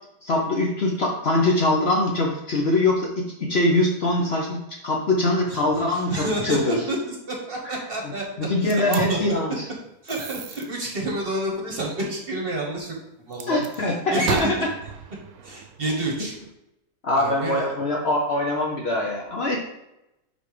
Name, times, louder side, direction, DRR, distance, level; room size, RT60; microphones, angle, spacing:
voice 1, 0.2-4.6 4.8-6.8 7.6-7.8 8.5-9.7 13.4-14.6 17.0-19.6, left 2 dB, 50° left, 0 dB, 0.9 m, -23 dB
voice 2, 5.5-8.3 8.6-9.2 10.0-14.7 15.4-16.3 17.1-17.7, right 2 dB, 40° right, -1 dB, 1.2 m, -29 dB
sound 1, 8.7-9.0 10.1-10.7 13.3-13.8 14.3-16.5, right 7 dB, 70° right, 1.1 m, -34 dB
5.3 x 4.1 x 4.8 m, 0.89 s
omnidirectional pair, 1.6 m